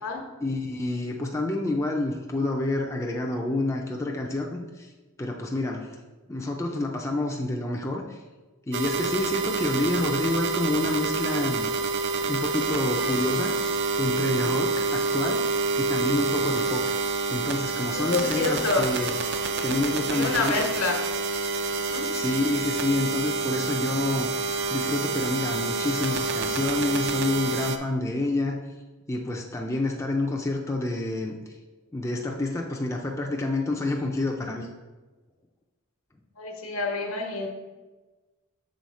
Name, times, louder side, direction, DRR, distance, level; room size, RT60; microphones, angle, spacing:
voice 1, 0.4-4.9 5.2-6.0 6.3-8.2 8.7-11.7 12.2-13.5 14.0-15.4 15.8-16.9 17.3-19.1 19.6-20.6 22.1-24.3 24.7-28.6 29.1-31.4 31.9-34.7, left 2 dB, 15° left, 0 dB, 0.4 m, -28 dB
sound 1, 8.7-27.8, right 4 dB, 55° right, 0.4 m, -27 dB
voice 2, 17.9-18.8 20.1-21.0 21.8-22.1 36.4-37.5, left 3 dB, 70° left, 2 dB, 1.1 m, -28 dB
6.3 x 4.1 x 4.1 m, 1.2 s
head